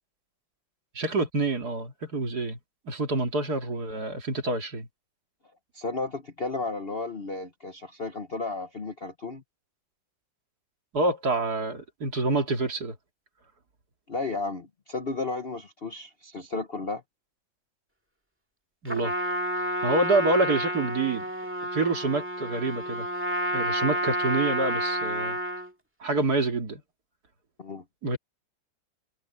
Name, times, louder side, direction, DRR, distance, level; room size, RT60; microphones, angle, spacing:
voice 1, 0.9-2.6 2.9-4.9 10.9-12.9 18.8-19.1 19.8-21.2 21.7-23.1 23.5-25.4 26.0-26.8 28.0-28.2, right 2 dB, 50° right, 2.9 m, -27 dB
voice 2, 5.7-9.4 14.1-17.0 27.6-27.8, left 3 dB, 40° left, 1.0 m, -33 dB
Trumpet, 18.8-25.7, right 1 dB, 5° right, 2.0 m, -30 dB
omnidirectional pair, 2.1 m